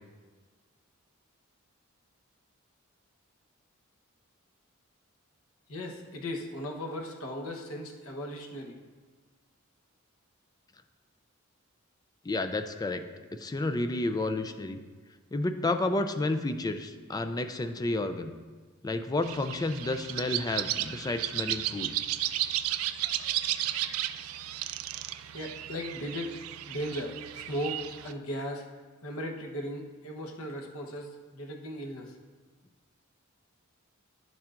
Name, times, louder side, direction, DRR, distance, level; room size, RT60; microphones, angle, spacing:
voice 1, 5.7-8.7 25.3-26.3 26.6-28.6 29.0-32.1, equal, 85° left, 1 dB, 1.0 m, -37 dB
voice 2, 12.3-13.0 13.3-14.8 15.3-18.3 18.8-21.9, left 2 dB, 20° left, 9 dB, 0.3 m, -31 dB
sound 1, 19.2-28.1, right 13 dB, 80° right, 0.3 m, -34 dB
10.5 x 7.1 x 2.5 m, 1.4 s
head